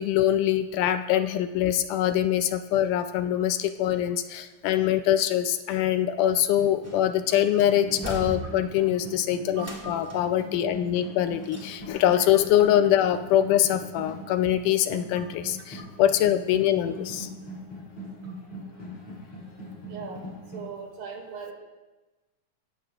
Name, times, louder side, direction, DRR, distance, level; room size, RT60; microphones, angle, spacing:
voice 1, 0.0-17.3, left 11 dB, 80° left, 9 dB, 2.0 m, -24 dB
sound 1, 6.1-20.6, equal, 50° left, 4.1 m, -41 dB
sound 2, 6.8-7.2 7.6-8.9 9.5-10.4 11.4-12.1 12.4-12.5, equal, 10° right, 1.1 m, -39 dB
voice 2, 9.6-9.9 19.9-20.2 20.5-21.5, right 4 dB, 75° right, 1 dB, 3.9 m, -39 dB
17.0 x 14.5 x 2.4 m, 1.1 s
omnidirectional pair, 4.0 m